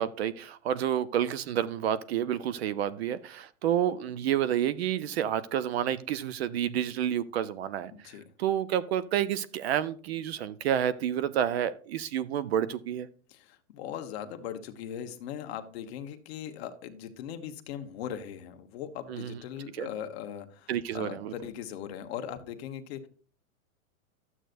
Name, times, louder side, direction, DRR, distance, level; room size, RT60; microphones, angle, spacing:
voice 1, 0.0-7.9 8.4-13.1 19.1-19.4 19.8-19.9 20.7-21.3, right 10 dB, 45° right, 17 dB, 0.6 m, -29 dB
voice 2, 7.9-8.2 13.3-23.1, left 9 dB, 45° left, 7 dB, 1.2 m, -39 dB
12.5 x 7.9 x 2.6 m, 0.40 s
supercardioid pair, 160°, 43 cm